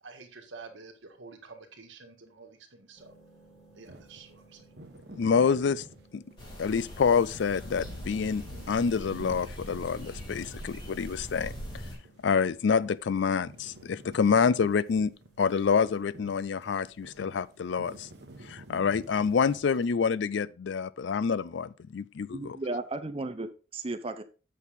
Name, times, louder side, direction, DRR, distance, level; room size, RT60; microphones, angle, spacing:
voice 1, 0.0-3.1 3.7-4.7, right 4 dB, 75° right, 1.6 m, -49 dB
sound 1, 3.0-19.9, right 2 dB, ahead, 2.5 m, -62 dB
sound 2, 3.9-6.7 7.1-13.2 13.5-20.1, right 1 dB, 55° right, 1.2 m, -50 dB
voice 2, 5.2-5.8 6.1-6.2 6.6-11.5 12.2-15.1 15.4-18.1 18.5-22.6, left 6 dB, 70° left, 0.4 m, -27 dB
sound 3, 6.4-11.9, equal, 25° left, 2.5 m, -42 dB
voice 3, 22.3-24.2, right 2 dB, 30° right, 0.6 m, -35 dB
8.2 x 6.3 x 3.6 m
head